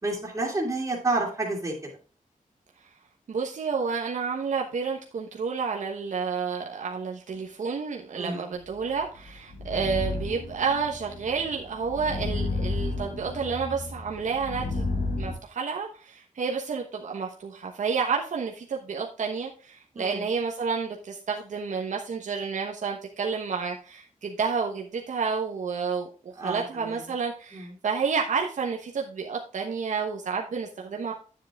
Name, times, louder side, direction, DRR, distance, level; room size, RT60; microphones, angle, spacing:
voice 1, 0.0-1.7 8.2-8.4 20.0-20.2 26.4-27.0 27.5-27.7, right 2 dB, 20° right, -5 dB, 2.4 m, -29 dB
voice 2, 3.3-14.9 15.2-31.1, right 5 dB, 65° right, 0 dB, 1.1 m, -30 dB
sound 1, 8.9-15.3, left 2 dB, 80° left, 3.0 m, -32 dB
10.0 x 7.5 x 3.5 m, 0.38 s
wide cardioid pair, 160°, 14 cm